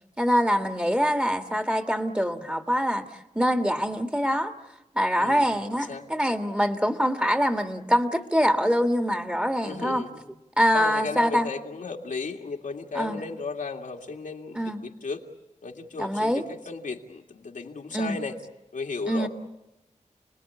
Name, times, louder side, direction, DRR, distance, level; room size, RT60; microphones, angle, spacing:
voice 1, 0.2-3.1 3.4-4.5 5.0-10.0 10.6-11.5 12.9-13.2 14.5-14.8 16.0-16.5 17.9-18.2 19.1-19.3, equal, 10° right, 6 dB, 1.7 m, -24 dB
voice 2, 5.2-5.5 5.9-6.0 9.6-10.1 10.7-15.2 15.6-18.3 18.7-19.3, left 4 dB, 85° left, 1 dB, 2.2 m, -35 dB
29.5 x 20.0 x 8.6 m, 0.97 s
wide cardioid pair, 85°, 13 cm